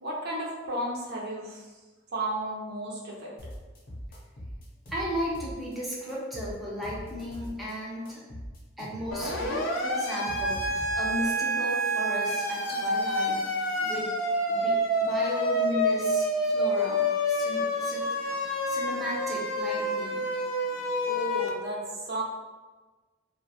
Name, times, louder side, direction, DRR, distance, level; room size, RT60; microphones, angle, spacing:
voice 1, 0.0-1.6 2.1-3.3 21.1-22.2, right 1 dB, 55° right, -3 dB, 0.5 m, -33 dB
sound 1, 3.4-5.8 6.1-7.7 8.1-11.3, equal, 50° left, 0.7 m, -42 dB
voice 2, 4.9-8.2 8.8-14.1 14.5-18.4 18.7-20.2, equal, ahead, -7 dB, 0.5 m, -35 dB
Siren, 9.1-21.5, equal, 90° left, 0.4 m, -28 dB
2.4 x 2.1 x 2.7 m, 1.3 s
head